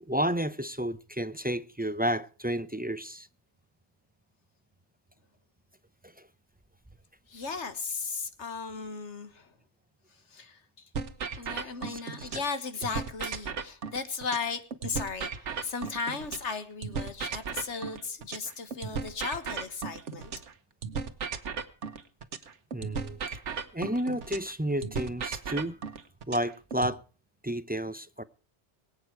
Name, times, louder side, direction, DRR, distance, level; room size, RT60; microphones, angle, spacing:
voice 1, 0.0-3.3 6.0-6.1 11.9-12.3 22.7-23.4 23.7-25.8 26.3-27.0 27.4-28.2, equal, 15° right, 0.3 m, -31 dB
voice 2, 7.3-9.5 10.3-10.9 11.4-20.3, left 5 dB, 80° left, 1.8 m, -36 dB
sound 1, 10.9-12.5 12.8-16.5 16.8-20.5 20.8-24.5 24.8-26.9, right 5 dB, 90° right, 1.5 m, -36 dB
22.5 x 8.8 x 4.7 m
omnidirectional pair, 1.2 m